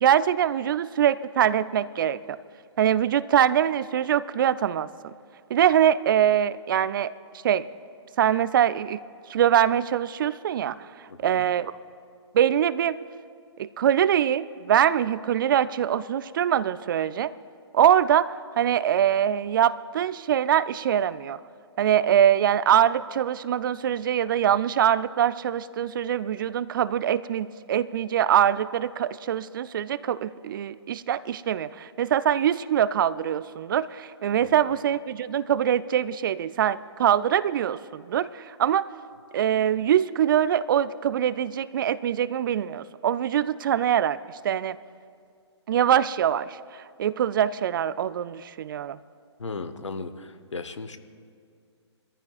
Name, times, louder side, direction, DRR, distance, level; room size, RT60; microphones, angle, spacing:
voice 1, 0.0-2.4 2.8-4.9 5.5-7.1 7.4-7.7 8.2-9.0 9.3-11.7 12.3-13.0 13.6-17.3 17.7-21.4 21.8-38.9 39.3-44.2 44.4-44.8 45.7-49.0, right 10 dB, 45° right, 17 dB, 0.4 m, -23 dB
voice 2, 11.1-11.4 34.4-34.5 49.4-51.0, left 3 dB, 80° left, 10 dB, 0.9 m, -36 dB
23.0 x 14.0 x 2.4 m, 2.2 s
figure-of-eight pair, 135°, 15 cm